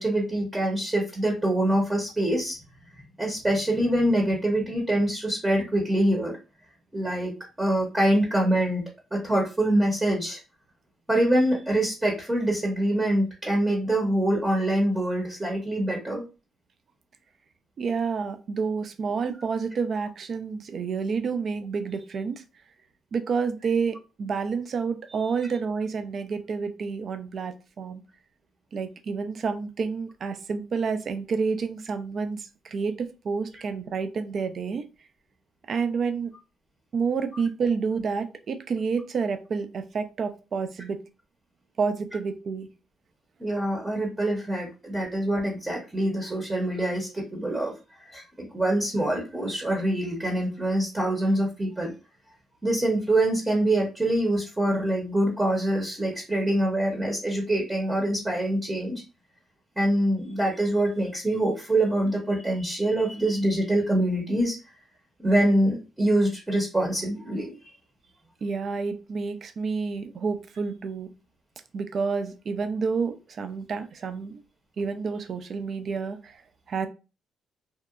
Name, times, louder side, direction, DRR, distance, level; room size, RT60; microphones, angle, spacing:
voice 1, 0.0-2.6 3.2-6.4 6.9-8.8 9.1-10.4 11.1-16.2 43.4-47.7 48.0-51.9 52.6-59.0 59.8-64.6 65.2-67.7, right 1 dB, 15° right, -1 dB, 0.7 m, -25 dB
voice 2, 17.8-22.4 23.1-28.0 28.7-34.8 35.7-36.3 36.9-41.0 41.8-42.7 68.4-71.1 71.7-74.4 74.8-76.4 76.7-76.9, right 5 dB, 50° right, 9 dB, 0.4 m, -29 dB
2.8 x 2.1 x 2.4 m, 0.30 s
cardioid pair, 95°, 0 cm